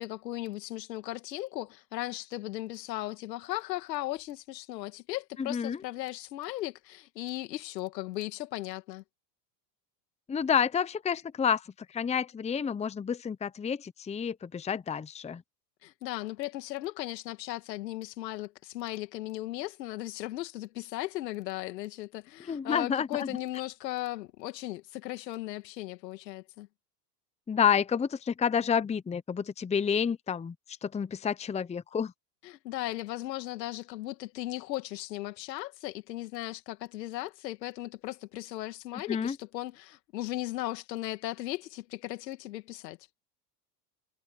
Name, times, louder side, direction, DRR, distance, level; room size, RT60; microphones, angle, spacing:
voice 1, 0.0-9.0 15.8-26.7 32.4-43.0, left 16 dB, 80° left, 2.5 m, -37 dB
voice 2, 5.4-5.8 10.3-11.6 11.9-15.4 22.5-23.3 27.5-30.5 30.8-32.1 39.1-39.3, left 7 dB, 15° left, 0.8 m, -29 dB
hypercardioid pair, 100°, 49 cm